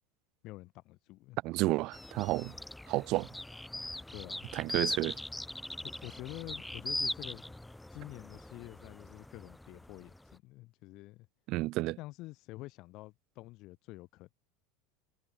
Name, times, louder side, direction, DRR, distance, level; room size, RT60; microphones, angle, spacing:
voice 1, 0.4-1.4 4.1-4.5 5.8-7.5 7.9-11.3 12.0-14.3, left 19 dB, 50° left, 2.9 m, -48 dB
voice 2, 1.4-2.5 2.9-3.3 4.5-5.2 11.5-12.0, right 20 dB, 50° right, 0.6 m, -31 dB
sound 1, 1.9-10.3, left 1 dB, 5° left, 2.4 m, -41 dB
supercardioid pair, 130°, 0 cm